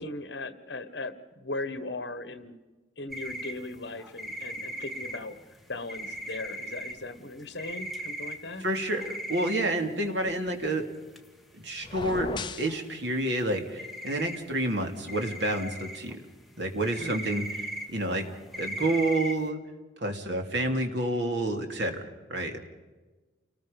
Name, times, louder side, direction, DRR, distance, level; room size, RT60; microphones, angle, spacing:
voice 1, 0.0-2.6 3.0-5.4 5.7-8.6 17.0-17.3, left 2 dB, 60° left, 11 dB, 1.5 m, -38 dB
sound 1, 3.1-9.9 10.2-10.3 10.5-10.6 10.9-11.2 11.6-11.7 11.9-12.4 12.7-13.5 13.8-14.8 15.1-19.5, right 1 dB, ahead, 1.5 m, -38 dB
voice 2, 8.6-10.9 11.6-12.3 12.6-16.2 16.6-17.4 17.9-18.2 18.6-19.6 20.0-22.0 22.3-22.6, right 1 dB, 60° right, 4 dB, 2.8 m, -29 dB
sound 2, 11.8-12.8, left 3 dB, 25° left, 0.8 m, -35 dB
29.5 x 20.0 x 5.4 m, 1.2 s
head